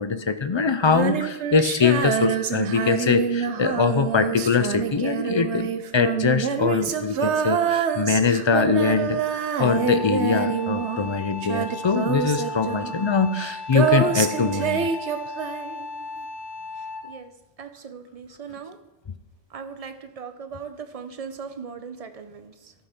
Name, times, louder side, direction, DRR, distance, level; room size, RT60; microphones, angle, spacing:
voice 1, 0.0-9.2 9.6-14.9, left 5 dB, 40° left, 10 dB, 0.4 m, -22 dB
Female singing, 0.8-11.2 11.4-15.9, right 7 dB, 85° right, 1.0 m, -26 dB
Wind instrument woodwind instrument, 9.6-17.2, left 3 dB, 75° left, 1.6 m, -36 dB
voice 2, 16.7-17.3 17.6-18.8 19.5-22.7, right 6 dB, 40° right, 9 dB, 0.7 m, -39 dB
13.0 x 5.7 x 4.4 m, 0.96 s
omnidirectional pair, 1.1 m